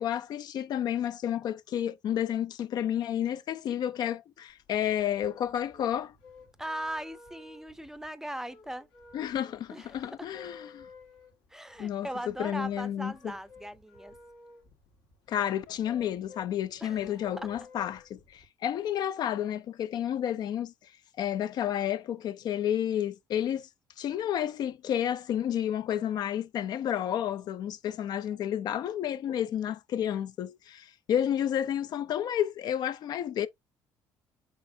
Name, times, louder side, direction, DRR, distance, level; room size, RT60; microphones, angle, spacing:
voice 1, 0.0-6.1 9.1-10.9 11.8-13.4 15.3-20.7 21.2-23.7 24.0-33.5, left 10 dB, 60° left, 0.4 m, -31 dB
sound 1, 4.5-18.5, left 4 dB, 80° left, 1.4 m, -53 dB
voice 2, 6.6-8.9 9.7-10.3 11.5-14.1 16.8-17.5, right 1 dB, 5° right, 0.5 m, -39 dB
4.4 x 3.4 x 2.6 m
supercardioid pair, 70°, 8 cm